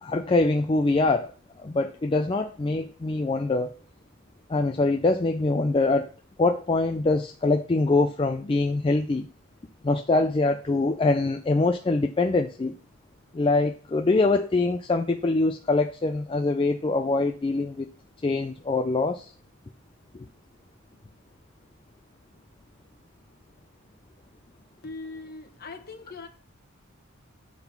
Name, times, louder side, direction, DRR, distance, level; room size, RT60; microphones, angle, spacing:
voice 1, 0.0-1.3 1.6-3.7 4.5-6.1 6.4-9.3 9.8-12.8 13.3-17.9 18.2-19.3 20.1-20.3, left 3 dB, 25° left, 0.3 m, -24 dB
voice 2, 24.8-26.3, left 3 dB, 45° left, 1.1 m, -40 dB
8.7 x 4.0 x 5.7 m
head